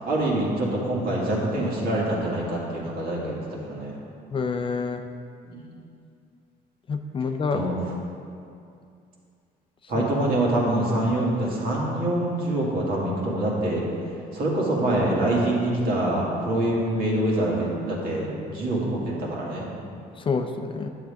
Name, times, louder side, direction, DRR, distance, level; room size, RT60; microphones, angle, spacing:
voice 1, 0.1-4.0 5.4-5.6 7.5-7.8 9.9-13.8 14.3-19.7, right 1 dB, 60° right, -4 dB, 2.2 m, -25 dB
voice 2, 4.3-5.0 6.9-7.6 9.9-10.1 20.3-20.9, left 5 dB, 30° left, 6 dB, 0.5 m, -27 dB
10.0 x 7.4 x 3.5 m, 2.5 s
cardioid pair, 110°, 17 cm